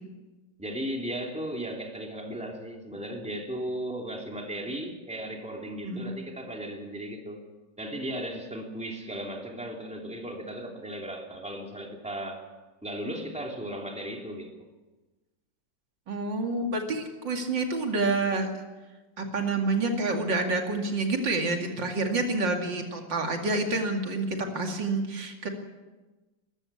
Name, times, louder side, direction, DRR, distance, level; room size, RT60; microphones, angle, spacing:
voice 1, 0.6-7.4 7.8-12.4 12.8-14.6, right 1 dB, 5° right, 1 dB, 2.8 m, -36 dB
voice 2, 16.1-18.5 19.2-25.5, right 3 dB, 75° right, 3 dB, 3.0 m, -28 dB
22.5 x 14.0 x 8.4 m, 1.2 s
omnidirectional pair, 2.0 m